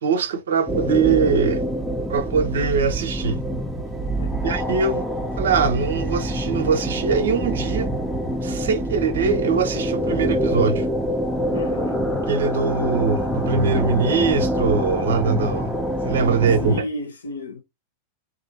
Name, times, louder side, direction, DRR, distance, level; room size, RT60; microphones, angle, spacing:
voice 1, 0.0-1.6 2.1-3.4 4.4-5.0 5.4-7.9 8.4-10.9 12.3-15.7 16.0-16.9, right 5 dB, 65° right, 0.5 m, -22 dB
sound 1, 0.7-16.8, equal, ahead, 0.5 m, -25 dB
voice 2, 4.1-4.6 11.5-12.1 16.6-17.6, equal, 70° left, 0.7 m, -33 dB
2.6 x 2.4 x 2.8 m
figure-of-eight pair, 90°, 0 cm